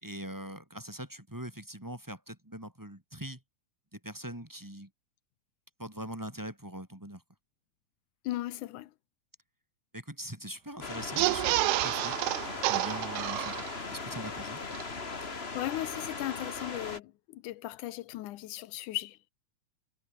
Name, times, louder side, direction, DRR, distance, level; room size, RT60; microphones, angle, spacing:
voice 1, 0.0-3.4 3.9-4.9 5.8-7.2 9.9-11.6 11.8-12.2 12.7-14.6, right 1 dB, 5° right, 3.0 m, -42 dB
voice 2, 8.2-8.9 15.2-19.2, left 15 dB, 75° left, 2.2 m, -37 dB
sound 1, 10.8-17.0, left 4 dB, 25° left, 1.5 m, -39 dB
sound 2, 11.0-14.0 14.4-14.5 14.7-14.8, right 20 dB, 80° right, 2.0 m, -29 dB
omnidirectional pair, 3.7 m